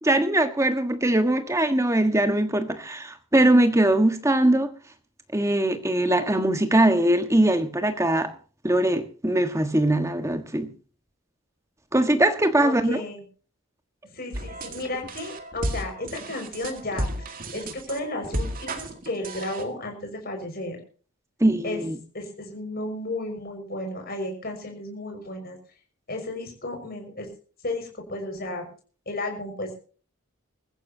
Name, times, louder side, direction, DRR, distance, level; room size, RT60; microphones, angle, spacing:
voice 1, 0.0-4.7 5.3-8.3 8.6-10.7 11.9-13.0 21.4-22.0, right 1 dB, 15° right, 1.5 m, -21 dB
voice 2, 12.6-13.2 14.1-20.8 21.6-21.8 22.1-25.6 26.1-27.3 27.6-28.7 29.1-29.8, left 2 dB, 45° left, 6.0 m, -33 dB
sound 1, 14.3-19.6, right 1 dB, 40° right, 2.3 m, -33 dB
23.5 x 15.0 x 2.9 m
head